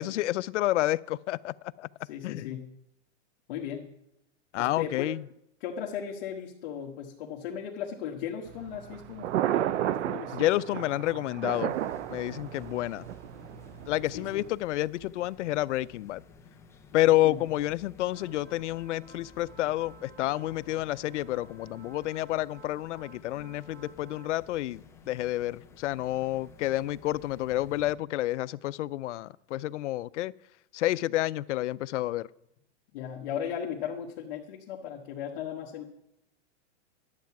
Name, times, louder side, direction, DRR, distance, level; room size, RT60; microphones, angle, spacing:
voice 1, 0.0-1.9 2.2-2.6 4.5-5.2 10.3-11.8 12.1-13.1 13.9-16.2 16.9-30.3 30.7-32.3, left 15 dB, 90° left, 0.5 m, -29 dB
voice 2, 2.0-2.7 3.5-3.9 4.6-5.1 5.6-9.3 10.0-10.6 14.1-14.4 17.0-17.4 32.9-35.8, left 8 dB, 50° left, 1.4 m, -37 dB
Thunder, 8.5-14.5, right 11 dB, 80° right, 0.6 m, -33 dB
sound 1, 11.7-28.0, left 5 dB, 10° left, 0.5 m, -54 dB
sound 2, 18.1-24.4, right 2 dB, 30° right, 4.9 m, -54 dB
12.0 x 8.4 x 5.9 m
supercardioid pair, 155°, 35 cm